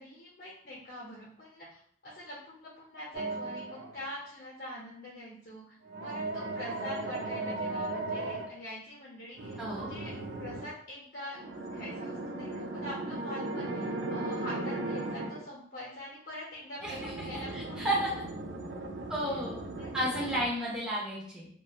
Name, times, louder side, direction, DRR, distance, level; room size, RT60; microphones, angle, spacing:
voice 1, 0.0-5.8 6.0-10.1 10.4-11.4 11.7-18.0 19.8-20.2, left 1 dB, 55° left, -7 dB, 0.6 m, -44 dB
sound 1, 3.1-4.0 5.9-8.5 9.4-10.7 11.3-15.4 16.8-20.5, right 2 dB, 80° right, 0.4 m, -37 dB
voice 2, 9.6-9.9 16.8-18.2 19.1-19.6 19.9-21.5, right 1 dB, 5° right, -6 dB, 0.6 m, -33 dB
2.8 x 2.2 x 2.3 m, 0.62 s
head